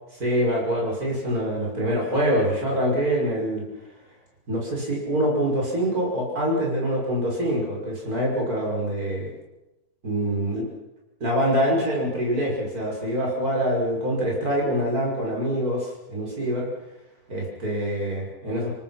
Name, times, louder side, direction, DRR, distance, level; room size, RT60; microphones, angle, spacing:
voice 1, 0.1-3.7 4.5-9.3 10.0-10.7 11.2-16.7 17.3-18.7, equal, 75° right, -2 dB, 6.5 m, -25 dB
29.0 x 18.5 x 5.9 m, 0.95 s
omnidirectional pair, 1.6 m